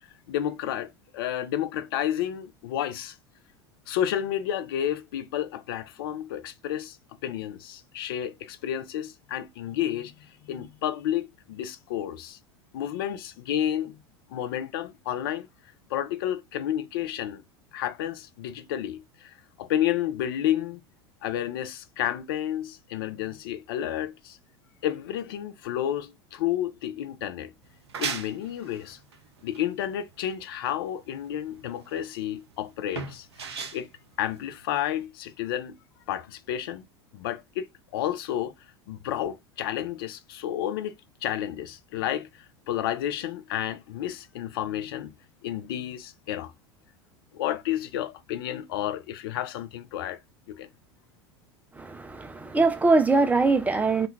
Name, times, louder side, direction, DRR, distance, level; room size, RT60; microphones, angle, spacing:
voice 1, 0.3-3.2 3.9-7.0 7.2-12.4 12.7-14.0 14.3-15.5 15.9-17.4 17.7-20.8 21.2-24.4 24.8-27.5 28.0-29.0 29.4-33.3 33.7-33.9 34.2-35.8 36.1-36.8 37.1-37.7 37.9-38.5 38.9-40.9 41.2-45.1 45.4-46.5 47.3-50.2 50.5-50.7, left 11 dB, 55° left, 0.4 m, -31 dB
sound 1, 27.6-35.0, right 6 dB, 70° right, 0.5 m, -38 dB
voice 2, 51.8-54.1, right 3 dB, 10° right, 0.3 m, -22 dB
2.3 x 2.2 x 3.5 m
figure-of-eight pair, 80°, 14 cm